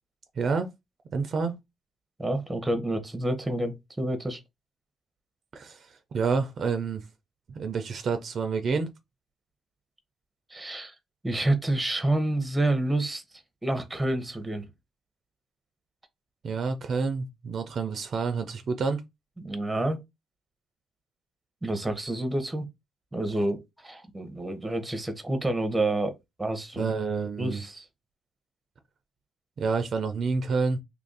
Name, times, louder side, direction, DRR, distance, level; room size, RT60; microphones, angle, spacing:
voice 1, 0.4-0.7 1.1-1.5 5.5-5.8 6.1-7.0 7.5-8.9 16.4-19.0 26.8-27.6 29.6-30.8, right 4 dB, 55° right, 0.6 m, -28 dB
voice 2, 2.2-4.4 10.5-10.9 11.2-13.2 13.6-14.7 19.4-20.0 21.6-22.6 23.1-26.9 27.4-27.9, right 1 dB, 10° right, 0.9 m, -28 dB
2.8 x 2.6 x 3.9 m
cardioid pair, 90°, 0 cm